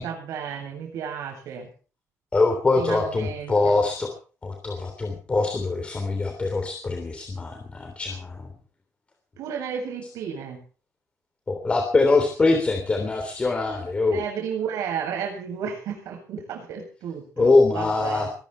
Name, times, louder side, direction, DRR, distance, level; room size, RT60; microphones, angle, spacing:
voice 1, 0.0-1.7 2.8-3.7 9.4-10.6 14.1-18.3, right 7 dB, 90° right, 2 dB, 7.9 m, -33 dB
voice 2, 2.3-4.1 4.4-8.5 11.5-14.2 17.4-18.3, left 3 dB, 20° left, 3 dB, 3.4 m, -23 dB
22.0 x 14.0 x 4.6 m, 0.40 s
cardioid pair, 145°, 5 cm